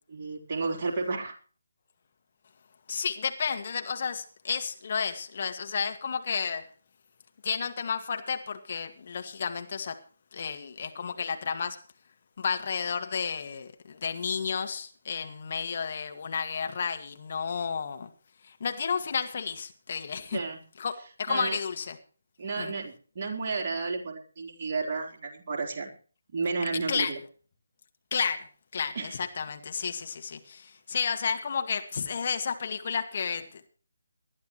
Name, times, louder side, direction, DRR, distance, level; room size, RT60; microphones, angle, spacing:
voice 1, 0.1-1.3 20.3-20.6 21.3-21.6 22.4-25.9 26.3-27.2 29.0-29.2, right 4 dB, 35° right, 0 dB, 3.9 m, -32 dB
voice 2, 2.9-6.7 7.4-10.0 10.3-11.8 12.4-18.1 18.4-20.4 20.8-22.0 22.6-22.7 26.7-27.1 28.1-28.5 28.7-33.7, left 6 dB, 45° left, 7 dB, 2.0 m, -32 dB
20.5 x 12.5 x 3.1 m, 0.40 s
figure-of-eight pair, 150°, 0 cm